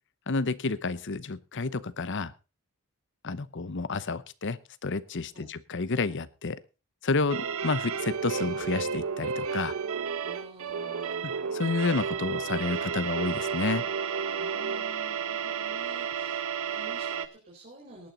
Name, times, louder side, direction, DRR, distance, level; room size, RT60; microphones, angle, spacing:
voice 1, 0.3-2.3 3.2-6.6 7.0-9.7 11.2-13.8, left 3 dB, 55° left, 16 dB, 0.8 m, -30 dB
sound 1, 7.3-17.3, right 6 dB, 75° right, 1.0 m, -32 dB
voice 2, 10.2-11.4 14.4-18.1, right 1 dB, 40° right, -3 dB, 4.4 m, -50 dB
18.5 x 9.2 x 4.0 m, 0.31 s
head